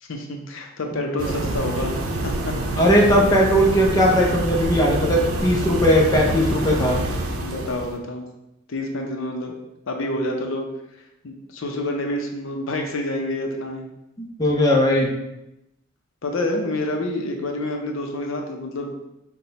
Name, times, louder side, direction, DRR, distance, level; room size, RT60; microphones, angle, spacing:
voice 1, 0.0-1.9 2.2-2.6 6.2-6.4 7.4-8.2 8.7-9.5 9.9-10.7 11.2-13.9 16.2-18.9, left 1 dB, 65° left, 2 dB, 0.6 m, -28 dB
sound 1, 1.2-8.0, right 2 dB, 75° right, 0.6 m, -26 dB
voice 2, 2.8-7.0 14.2-15.1, equal, 15° left, -2 dB, 0.6 m, -18 dB
5.8 x 2.2 x 4.0 m, 0.90 s
head